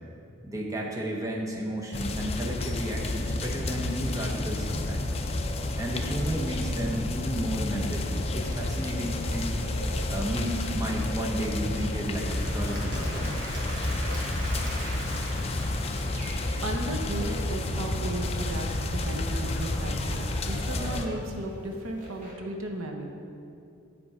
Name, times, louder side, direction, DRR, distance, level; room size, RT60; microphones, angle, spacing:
voice 1, 0.4-5.2 5.8-9.5 10.1-13.5, equal, 15° right, -2 dB, 0.8 m, -33 dB
sound 1, 1.9-21.1, left 2 dB, 30° left, 0.4 m, -30 dB
sound 2, 8.3-22.3, right 1 dB, 35° right, 1.6 m, -46 dB
Applause / Crowd, 12.0-17.0, right 1 dB, 55° right, 1.5 m, -40 dB
voice 2, 16.6-23.1, right 1 dB, 80° right, 3 dB, 0.9 m, -35 dB
8.7 x 5.2 x 4.8 m, 2.5 s
head